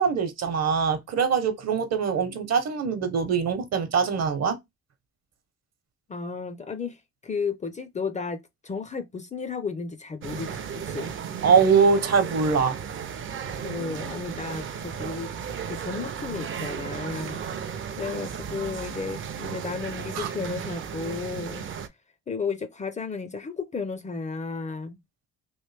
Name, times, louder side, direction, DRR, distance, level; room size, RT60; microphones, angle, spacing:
voice 1, 0.0-4.6 11.4-12.7 20.2-20.3, right 6 dB, 60° right, 0.9 m, -23 dB
voice 2, 6.1-11.1 13.6-15.3 15.7-17.4 18.0-21.7 22.3-25.0, left 5 dB, 25° left, 0.4 m, -33 dB
sound 1, 10.2-21.9, right 7 dB, 40° right, 0.5 m, -35 dB
3.1 x 2.6 x 3.3 m
cardioid pair, 90°, 30 cm